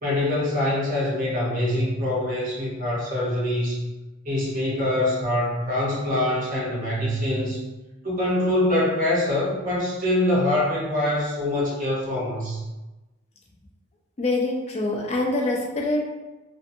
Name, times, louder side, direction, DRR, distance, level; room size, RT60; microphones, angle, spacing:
voice 1, 0.0-3.8 4.2-7.6 8.0-12.6, left 1 dB, 40° right, -6 dB, 0.9 m, -24 dB
voice 2, 14.2-16.0, left 2 dB, 30° left, -1 dB, 0.4 m, -25 dB
2.6 x 2.4 x 2.5 m, 1.1 s
head